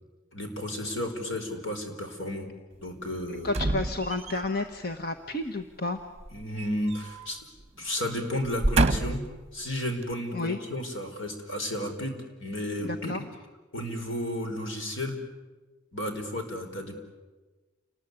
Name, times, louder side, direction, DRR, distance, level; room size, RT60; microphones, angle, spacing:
voice 1, 0.3-2.5 2.8-3.5 6.3-7.4 7.8-9.2 9.5-13.2 13.7-15.2 15.9-17.0, left 1 dB, 70° left, 4 dB, 5.0 m, -33 dB
voice 2, 3.4-6.0 10.3-10.6 12.8-13.2, left 2 dB, 50° left, 7 dB, 1.2 m, -31 dB
sound 1, 3.5-4.6 6.2-7.3 7.6-7.8 8.4-9.4 10.0-10.1, right 2 dB, 30° right, 1.1 m, -28 dB
29.5 x 20.5 x 9.7 m, 1.3 s
head